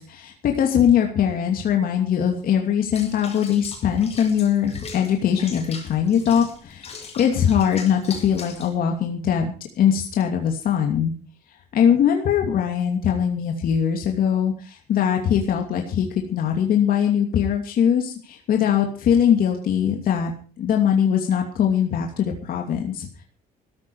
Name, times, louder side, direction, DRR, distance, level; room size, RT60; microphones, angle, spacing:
voice 1, 0.0-11.1 11.7-20.3 20.6-23.1, left 8 dB, 60° left, 2 dB, 2.7 m, -21 dB
Water / Bathtub (filling or washing), 2.9-8.7, left 5 dB, 35° left, 5.7 m, -40 dB
16.0 x 14.0 x 4.9 m, 0.37 s
cardioid pair, 110°, 17 cm